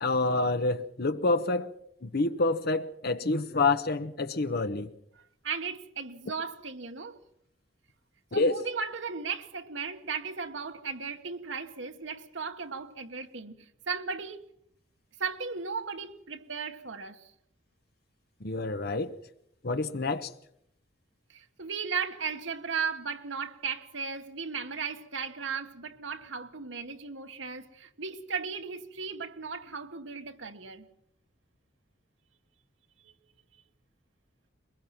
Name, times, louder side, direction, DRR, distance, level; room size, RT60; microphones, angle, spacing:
voice 1, 0.0-1.7 2.0-4.9 8.3-8.6 18.4-19.1 19.6-20.3, left 3 dB, 55° left, 1.0 m, -27 dB
voice 2, 5.4-7.2 8.3-14.4 15.2-17.3 21.3-30.9, right 5 dB, 85° right, 1.4 m, -36 dB
22.0 x 21.5 x 5.8 m
head